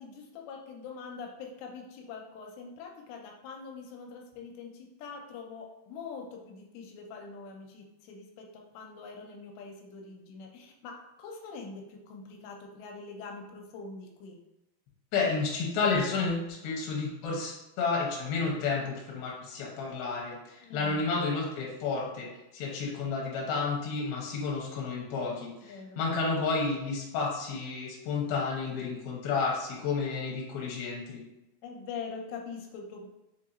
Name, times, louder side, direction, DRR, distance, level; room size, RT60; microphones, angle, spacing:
voice 1, 0.0-14.4 20.6-21.0 25.6-26.0 31.6-33.1, left 5 dB, 90° left, 1 dB, 2.8 m, -44 dB
voice 2, 15.1-22.3 22.5-31.2, left 4 dB, 75° left, -3 dB, 2.7 m, -31 dB
6.5 x 2.8 x 2.6 m, 0.93 s
omnidirectional pair, 4.9 m